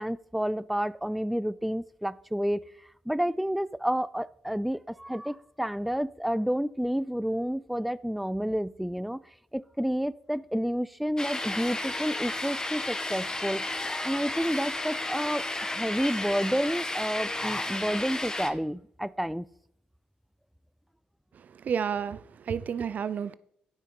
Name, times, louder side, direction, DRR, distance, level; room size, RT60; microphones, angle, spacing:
voice 1, 0.0-2.6 3.1-9.2 9.5-19.5, equal, ahead, 0.3 m, -30 dB
sound 1, 11.2-18.5, left 2 dB, 20° left, 1.2 m, -33 dB
voice 2, 21.3-23.3, right 7 dB, 60° right, 0.5 m, -31 dB
9.6 x 5.6 x 5.3 m
supercardioid pair, 50°, 3 cm